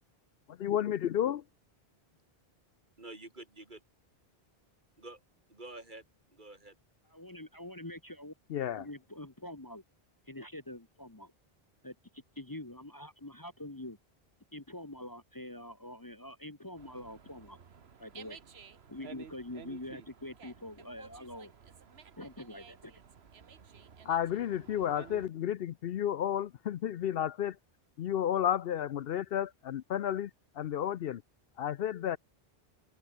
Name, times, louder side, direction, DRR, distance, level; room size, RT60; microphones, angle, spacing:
voice 1, 0.5-1.4 8.5-8.9 24.0-27.6 28.0-30.3 30.6-31.2 31.6-32.2, left 10 dB, 70° left, 0.8 m, -32 dB
voice 2, 3.0-3.8 5.0-5.2 5.5-6.0 6.3-6.7, right 2 dB, 50° right, 3.4 m, -48 dB
voice 3, 7.1-8.3 8.8-9.8 10.3-11.3 11.8-14.0 14.5-17.6 18.0-18.4 18.9-21.5 22.2-22.9, left 1 dB, 20° left, 1.2 m, -45 dB
Dog, 16.7-25.3, right 6 dB, 80° right, 1.5 m, -53 dB
open air
omnidirectional pair, 1.0 m